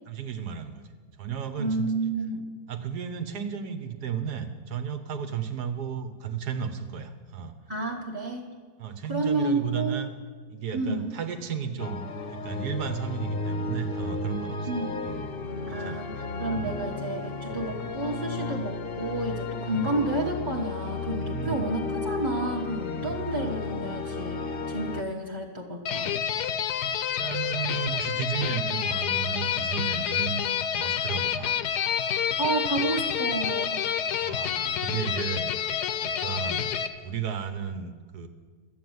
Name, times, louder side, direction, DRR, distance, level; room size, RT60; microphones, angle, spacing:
voice 1, 0.1-0.9 1.2-1.9 2.7-7.5 8.8-10.1 10.5-14.7 15.0-15.2 15.7-16.0 16.5-16.8 19.7-19.9 21.2-21.7 23.0-23.3 26.8-30.4 30.7-31.6 34.2-35.5 36.0-36.7 37.0-38.3, right 7 dB, 80° right, 8 dB, 1.7 m, -34 dB
voice 2, 1.6-2.4 7.7-8.5 9.1-10.1 10.7-11.1 14.7-15.0 15.7-26.1 32.4-33.8, right 2 dB, 15° right, -3 dB, 1.0 m, -30 dB
sound 1, 11.8-25.0, left 3 dB, 50° left, 0.7 m, -33 dB
sound 2, 25.9-36.9, left 8 dB, 85° left, 1.3 m, -28 dB
13.0 x 8.4 x 9.5 m, 1.5 s
omnidirectional pair, 1.7 m